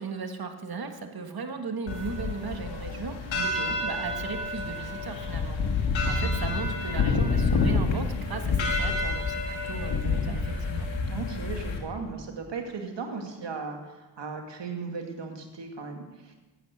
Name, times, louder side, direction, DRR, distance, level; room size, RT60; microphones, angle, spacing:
voice 1, 0.0-5.8 6.0-10.9, right 4 dB, 55° right, 6 dB, 1.6 m, -37 dB
sound 1, 1.9-11.8, left 3 dB, 85° left, 1.8 m, -28 dB
voice 2, 3.3-3.7 6.2-6.5 11.1-16.4, right 5 dB, 70° right, 3 dB, 2.3 m, -37 dB
13.5 x 9.3 x 6.6 m, 1.1 s
cardioid pair, 45°, 44 cm